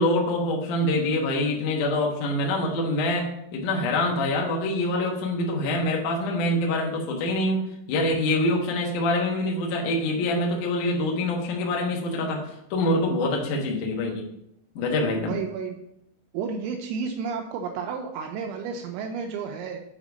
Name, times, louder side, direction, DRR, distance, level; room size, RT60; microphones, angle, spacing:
voice 1, 0.0-7.6 7.9-14.3 14.8-15.4, left 1 dB, 80° left, -1 dB, 1.8 m, -25 dB
voice 2, 15.3-15.8 16.3-19.8, right 6 dB, 85° right, 3 dB, 3.0 m, -31 dB
7.4 x 3.5 x 5.1 m, 0.77 s
omnidirectional pair, 5.4 m